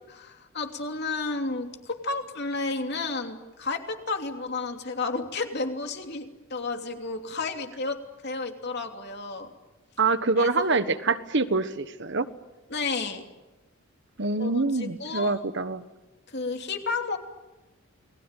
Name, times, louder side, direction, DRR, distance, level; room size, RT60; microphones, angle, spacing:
voice 1, 0.1-8.0 8.2-9.5 10.4-10.8 12.7-13.2 14.4-15.4 16.3-17.2, left 3 dB, 50° left, 4 dB, 3.0 m, -32 dB
voice 2, 10.0-12.3 14.2-15.9, right 3 dB, 55° right, 11 dB, 1.4 m, -25 dB
29.5 x 20.5 x 9.2 m, 1.1 s
head